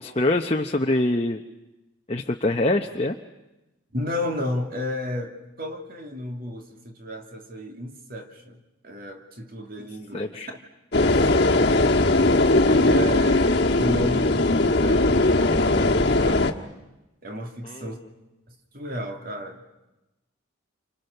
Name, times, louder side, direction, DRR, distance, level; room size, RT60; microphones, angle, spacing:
voice 1, 0.0-1.4 2.1-3.2 10.1-10.5 17.6-17.9, left 2 dB, 30° left, 3 dB, 0.9 m, -24 dB
voice 2, 3.9-10.4 11.0-12.0 12.6-13.5 13.8-16.6 17.2-18.0 18.5-19.7, equal, 45° right, 3 dB, 2.7 m, -33 dB
sound 1, 10.9-16.5, left 2 dB, 50° left, 1.5 m, -19 dB
29.5 x 26.0 x 6.7 m, 0.99 s
head